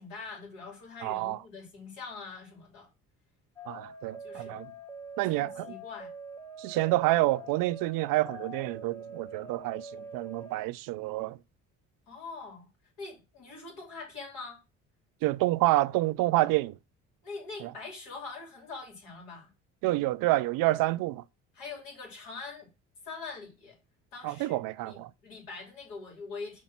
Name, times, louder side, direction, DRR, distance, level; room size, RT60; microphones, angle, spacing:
voice 1, 0.0-2.9 4.2-4.6 5.2-6.1 12.1-12.7 13.0-14.6 17.2-19.5 21.5-22.7 23.0-23.8 24.1-26.6, left 4 dB, 80° left, 3.3 m, -43 dB
voice 2, 1.0-1.4 3.7-4.7 5.2-5.7 6.6-11.4 15.2-16.7 17.6-17.7 19.8-21.2 24.2-25.1, right 18 dB, 70° right, 0.5 m, -28 dB
sound 1, 3.6-10.6, right 2 dB, 5° left, 0.9 m, -44 dB
6.0 x 3.2 x 5.8 m
supercardioid pair, 70°, 35 cm